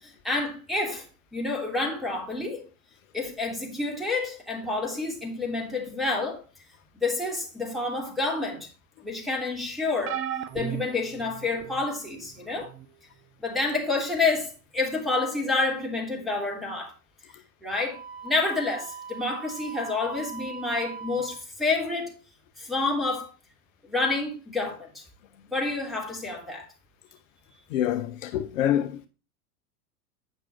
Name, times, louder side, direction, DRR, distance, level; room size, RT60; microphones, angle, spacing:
voice 1, 0.0-1.1 1.3-2.7 3.1-6.4 7.0-8.7 9.0-10.2 10.5-12.7 13.4-16.9 17.6-22.1 22.6-23.3 23.8-25.0 25.5-26.7, left 3 dB, ahead, 3.1 m, -29 dB
sound 1, 10.1-11.9 12.6-12.9 14.1-14.2, right 11 dB, 30° right, 0.7 m, -35 dB
Wind instrument woodwind instrument, 17.9-21.5, right 6 dB, 65° right, 4.9 m, -41 dB
voice 2, 27.7-29.1, left 11 dB, 60° left, 0.8 m, -26 dB
9.1 x 6.1 x 4.2 m
figure-of-eight pair, 85°, 45 cm